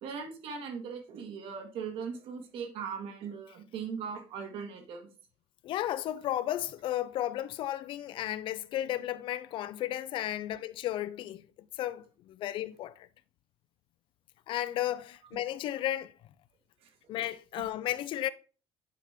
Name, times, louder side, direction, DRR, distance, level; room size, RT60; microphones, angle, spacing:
voice 1, 0.0-5.1, right 6 dB, 60° right, 1.6 m, -39 dB
voice 2, 5.6-13.1 14.5-16.1 17.1-18.3, left 13 dB, 50° left, 0.4 m, -34 dB
9.1 x 5.1 x 3.5 m
cardioid pair, 175°, 11 cm